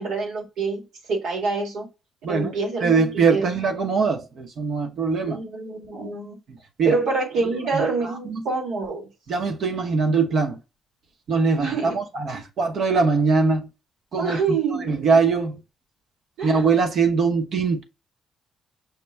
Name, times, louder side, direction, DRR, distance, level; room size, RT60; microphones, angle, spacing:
voice 1, 0.0-1.9 2.3-3.6 5.2-6.4 6.8-9.1 11.6-12.0 14.2-15.2 16.4-16.7, right 4 dB, 80° right, 1.5 m, -27 dB
voice 2, 2.8-5.4 6.8-7.0 7.4-7.8 8.3-8.4 9.3-10.6 11.3-13.7 14.1-14.4 14.9-15.6 16.4-17.8, right 4 dB, 65° right, 0.9 m, -22 dB
5.8 x 2.2 x 3.2 m
cardioid pair, 90°, 0 cm